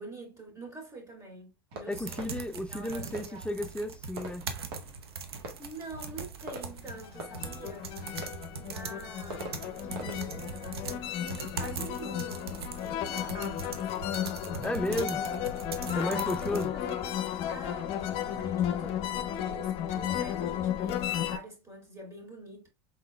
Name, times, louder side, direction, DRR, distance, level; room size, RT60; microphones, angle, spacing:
voice 1, 0.0-2.4 2.7-3.6 5.3-8.0 8.6-14.9 15.9-22.7, right 1 dB, 25° right, 2.4 m, -46 dB
Fireworks, 1.7-12.3, right 2 dB, 70° right, 1.5 m, -47 dB
voice 2, 1.9-4.5 14.6-15.2 15.9-16.7, left 1 dB, 10° left, 0.5 m, -33 dB
sound 1, 1.9-16.7, right 5 dB, 85° right, 0.7 m, -41 dB
sound 2, 6.9-21.4, left 10 dB, 50° left, 0.6 m, -34 dB
4.6 x 3.8 x 2.3 m
hypercardioid pair, 85°, 13 cm